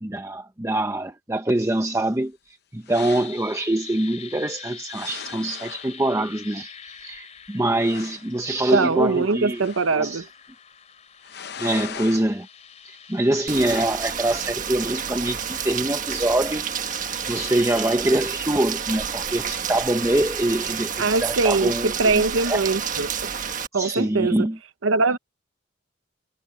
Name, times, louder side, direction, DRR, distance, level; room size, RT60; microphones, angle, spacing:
voice 1, 0.0-10.3 11.6-12.5 12.8-16.7 17.3-22.6 23.7-24.6, right 1 dB, 15° right, 0.7 m, -24 dB
sound 1, 2.9-3.4 4.9-5.9 7.1-7.2 7.5-7.6 7.8-8.3 9.5-10.0 11.2-12.3 13.5-13.9, left 7 dB, 50° left, 0.8 m, -38 dB
sound 2, 2.9-18.0, left 7 dB, 35° left, 3.0 m, -45 dB
voice 2, 8.7-10.2 21.0-23.1 23.7-24.5 24.8-25.2, right 3 dB, 80° right, 0.8 m, -22 dB
Rain, 13.5-23.7, right 7 dB, 40° right, 1.5 m, -30 dB
head